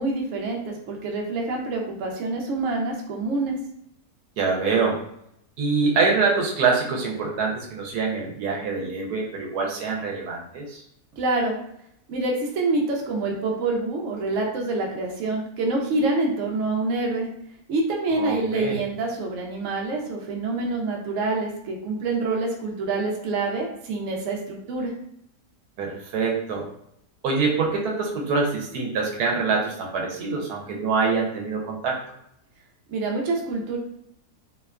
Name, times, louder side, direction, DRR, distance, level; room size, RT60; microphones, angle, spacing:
voice 1, 0.0-3.6 11.2-11.5 12.1-17.3 17.7-24.9 32.9-33.8, right 3 dB, 65° right, 0 dB, 0.8 m, -26 dB
voice 2, 4.4-5.0 5.6-10.8 18.1-18.8 25.8-26.7 27.2-32.0, right 4 dB, 80° right, 0 dB, 1.1 m, -25 dB
2.8 x 2.2 x 2.3 m, 0.74 s
omnidirectional pair, 1.6 m